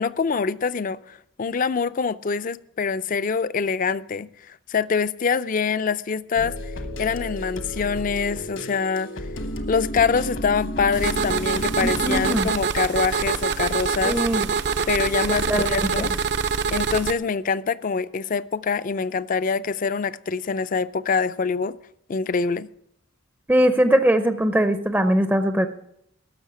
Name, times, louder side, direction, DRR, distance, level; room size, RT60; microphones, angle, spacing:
voice 1, 0.0-6.6 7.0-9.1 9.7-14.2 14.9-16.2 16.7-21.8 22.1-22.7, left 5 dB, 40° left, 0.4 m, -25 dB
sound 1, 6.4-12.4, equal, 65° left, 1.2 m, -32 dB
sound 2, 10.9-17.1, right 5 dB, 55° right, 0.6 m, -25 dB
voice 2, 11.8-12.5 14.0-14.5 15.3-16.1 23.5-25.7, equal, 10° right, 0.5 m, -21 dB
13.0 x 6.4 x 9.5 m
head